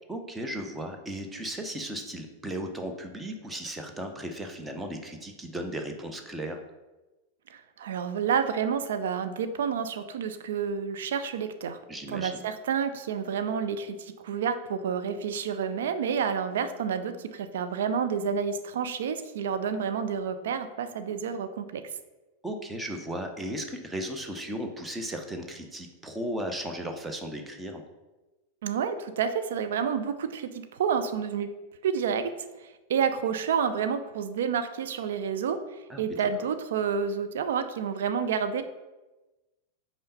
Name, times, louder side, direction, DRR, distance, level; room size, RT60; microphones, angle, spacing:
voice 1, 0.1-6.6 11.9-12.4 22.4-27.8 35.9-36.0, right 1 dB, 10° right, 4 dB, 0.8 m, -36 dB
voice 2, 7.5-11.8 12.1-21.8 28.6-31.5 31.8-32.3 32.6-38.6, right 7 dB, 60° right, 9 dB, 0.5 m, -29 dB
5.5 x 4.3 x 5.3 m, 1.1 s
figure-of-eight pair, 90°, 0 cm